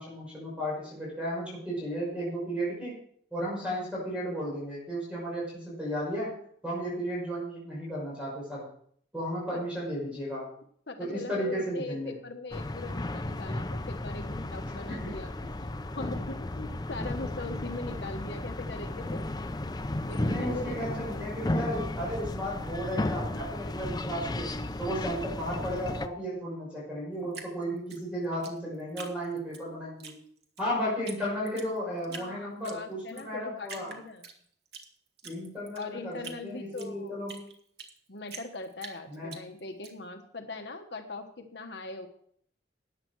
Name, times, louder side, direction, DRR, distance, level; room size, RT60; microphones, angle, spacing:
voice 1, 0.0-2.9 3.3-6.3 6.6-8.7 9.1-10.5 11.0-12.2 14.9-15.2 20.2-24.5 24.8-30.1 30.6-33.9 35.2-37.4 39.1-39.4, equal, 5° right, -6 dB, 5.8 m, -34 dB
voice 2, 10.9-15.3 15.6-19.3 20.1-21.0 32.1-34.2 35.7-37.2 38.1-42.1, left 3 dB, 65° left, 5 dB, 1.2 m, -41 dB
sound 1, 12.5-26.1, left 1 dB, 20° left, 0.5 m, -34 dB
Drip, 27.3-29.6 30.0-30.7 31.1-31.2 31.5-32.3 32.6-33.3 33.6-34.9 35.2-38.0 38.3-39.9, right 5 dB, 55° right, 1.7 m, -44 dB
14.0 x 9.5 x 4.6 m, 0.62 s
head